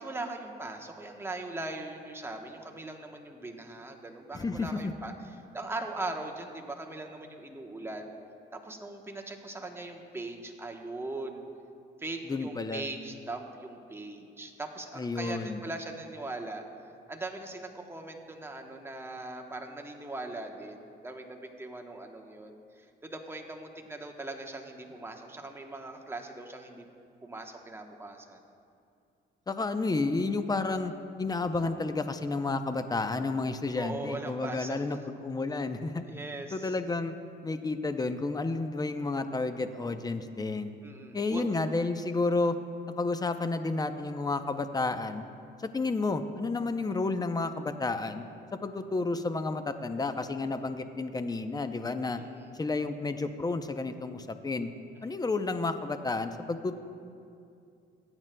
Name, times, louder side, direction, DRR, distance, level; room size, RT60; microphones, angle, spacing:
voice 1, 0.0-8.1 8.5-11.5 12.0-16.6 17.1-26.9 27.2-28.4 33.8-34.8 36.0-36.8 40.8-41.4 52.1-52.5 55.0-55.2, right 2 dB, 10° right, 2 dB, 1.0 m, -40 dB
voice 2, 4.3-4.9 12.3-12.8 15.0-15.6 29.5-30.9 31.2-36.1 36.5-37.1 37.4-40.7 41.1-42.6 42.9-45.2 45.6-48.2 48.5-52.2 52.5-54.7 55.0-56.8, left 3 dB, 20° left, 9 dB, 0.6 m, -31 dB
18.5 x 8.9 x 2.2 m, 2.5 s
cardioid pair, 90°, 20 cm